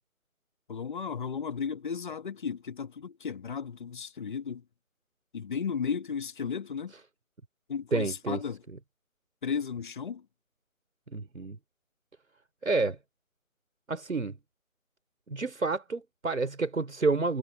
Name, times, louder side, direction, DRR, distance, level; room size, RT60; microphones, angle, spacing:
voice 1, 0.7-4.6 5.3-6.9 7.7-8.6 9.4-10.3, left 6 dB, 35° left, 1.9 m, -34 dB
voice 2, 7.9-8.4 11.1-11.6 12.6-13.0 13.9-14.4 15.3-17.4, right 3 dB, 65° right, 4.1 m, -29 dB
figure-of-eight pair, 150°, 42 cm